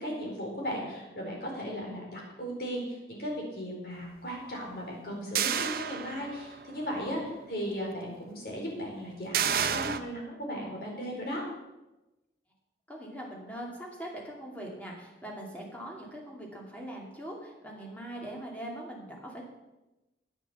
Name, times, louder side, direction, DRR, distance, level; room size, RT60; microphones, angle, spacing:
voice 1, 0.0-11.4, equal, 55° left, -2 dB, 4.2 m, -36 dB
sound 1, 5.3-6.6 7.1-7.2 9.3-10.0, right 8 dB, 55° right, 0.6 m, -30 dB
voice 2, 12.9-19.4, right 1 dB, 10° left, -2 dB, 2.6 m, -41 dB
9.7 x 9.2 x 7.1 m, 1.0 s
head